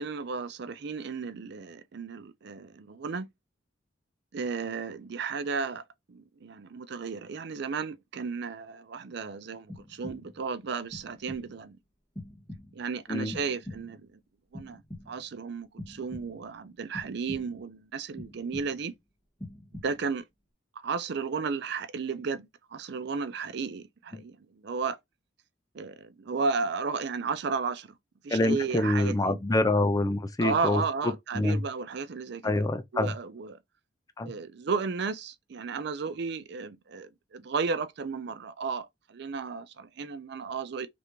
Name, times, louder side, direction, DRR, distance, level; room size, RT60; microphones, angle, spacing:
voice 1, 0.0-3.3 4.3-11.8 12.7-14.2 14.5-14.8 15.1-18.9 19.8-20.2 20.8-24.4 24.6-25.0 25.7-27.9 28.2-29.4 30.4-32.7 32.9-33.6 34.2-40.9, right 5 dB, 65° right, 0.5 m, -34 dB
sound 1, 9.7-10.5 10.9-11.6 12.2-12.9 13.3-14.1 14.5-15.4 15.8-16.6 16.9-17.7 18.2-19.0 19.4-20.2, left 1 dB, 5° left, 1.6 m, -45 dB
voice 2, 28.3-30.8 31.3-31.6 32.4-33.1 34.2-34.3, left 2 dB, 20° left, 0.4 m, -26 dB
3.3 x 2.6 x 3.0 m
head